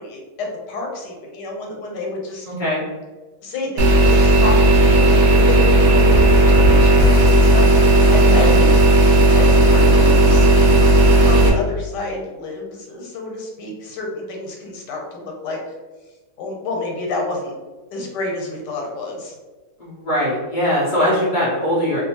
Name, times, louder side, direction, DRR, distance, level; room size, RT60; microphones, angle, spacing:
voice 1, 0.0-2.5 3.4-8.7 9.1-10.8 11.1-15.6 16.4-17.5 17.9-19.3, left 3 dB, 90° left, 0 dB, 1.3 m, -29 dB
voice 2, 2.4-2.8 8.2-8.5 19.8-22.0, equal, 75° left, -7 dB, 0.4 m, -21 dB
sound 1, 3.8-11.5, right 1 dB, 70° right, 0.9 m, -13 dB
2.5 x 2.3 x 2.8 m, 1.2 s
omnidirectional pair, 1.8 m